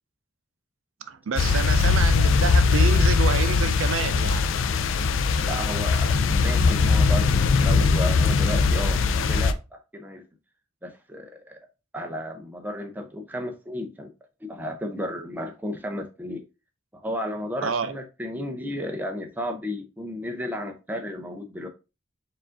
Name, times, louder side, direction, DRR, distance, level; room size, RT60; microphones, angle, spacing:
voice 1, 1.1-4.5 17.6-17.9, right 6 dB, 85° right, 0.5 m, -28 dB
sound 1, 1.4-9.5, left 4 dB, 80° left, 0.4 m, -20 dB
voice 2, 5.4-10.2 10.8-11.6 11.9-14.1 14.4-16.4 16.9-21.7, equal, 10° right, 0.5 m, -33 dB
4.6 x 2.5 x 3.7 m
head